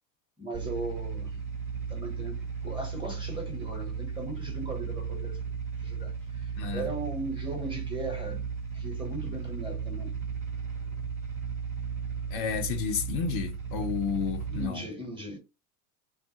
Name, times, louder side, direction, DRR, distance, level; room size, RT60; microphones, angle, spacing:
voice 1, 0.4-1.4 1.9-5.4 5.8-8.4 8.7-10.1 14.5-15.4, right 2 dB, 10° right, 1.0 m, -38 dB
sound 1, 0.5-14.7, right 6 dB, 40° right, 0.9 m, -35 dB
voice 2, 6.6-6.9 12.3-14.9, left 7 dB, 50° left, 0.7 m, -31 dB
2.3 x 2.0 x 2.8 m
hypercardioid pair, 85°, 49 cm